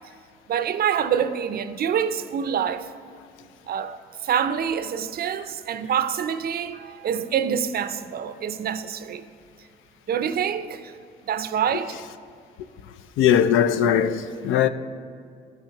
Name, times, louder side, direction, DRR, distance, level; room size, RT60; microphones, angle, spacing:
voice 1, 0.5-2.9 3.7-9.2 10.1-10.9 11.3-12.0, right 8 dB, 50° right, 0.5 m, -26 dB
voice 2, 13.2-14.7, left 9 dB, 85° left, 0.4 m, -19 dB
13.5 x 5.8 x 2.9 m
cardioid pair, 90°, 20 cm